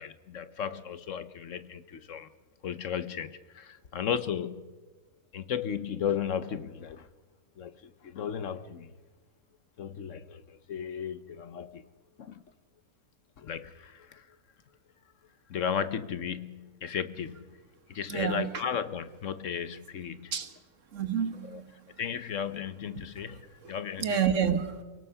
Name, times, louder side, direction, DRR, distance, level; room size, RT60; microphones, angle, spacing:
voice 1, 0.0-2.3 2.6-4.7 5.3-7.1 7.6-8.9 9.8-11.8 12.2-12.4 13.4-14.3 15.5-17.5 17.9-20.3 21.4-21.6 22.0-24.1, left 8 dB, 60° left, 13 dB, 1.1 m, -35 dB
voice 2, 18.1-18.5 20.3-20.5 20.9-21.7 23.6-23.7 24.0-24.8, right 7 dB, 60° right, 9 dB, 1.6 m, -29 dB
29.0 x 18.0 x 5.7 m, 1.3 s
omnidirectional pair, 1.5 m